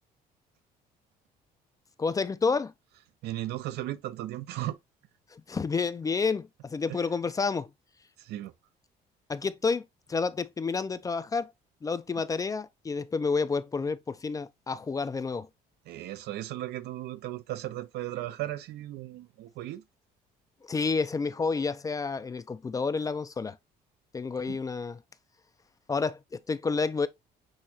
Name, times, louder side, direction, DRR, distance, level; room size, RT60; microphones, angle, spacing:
voice 1, 2.0-2.7 5.3-7.7 9.3-11.5 11.8-15.5 20.6-23.6 24.1-25.0 25.9-27.1, left 4 dB, 20° left, 0.4 m, -30 dB
voice 2, 3.2-4.8 6.9-7.0 8.2-8.5 15.9-19.8 24.5-24.6, right 14 dB, 75° right, 0.6 m, -36 dB
6.4 x 2.9 x 2.7 m
cardioid pair, 110°, 17 cm